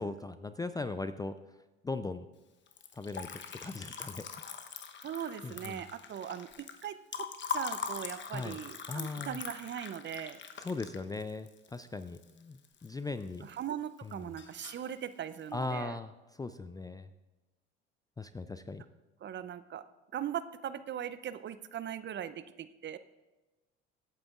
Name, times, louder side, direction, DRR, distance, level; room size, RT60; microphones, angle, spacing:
voice 1, 0.0-1.3 1.8-2.3 2.9-3.3 3.6-4.2 5.4-5.8 8.3-8.6 8.9-9.4 10.6-13.5 14.2-14.3 15.5-16.1 16.4-17.1 18.2-18.8, left 3 dB, 10° left, 11 dB, 0.4 m, -38 dB
Liquid, 2.7-12.9 13.2-13.9 14.1-14.9, left 6 dB, 35° left, 1.0 m, -42 dB
voice 2, 5.0-10.4 13.4-16.0 19.2-19.8 20.1-23.0, right 9 dB, 35° right, 14 dB, 0.6 m, -40 dB
25.0 x 8.7 x 2.5 m, 1.1 s
hypercardioid pair, 70°, 34 cm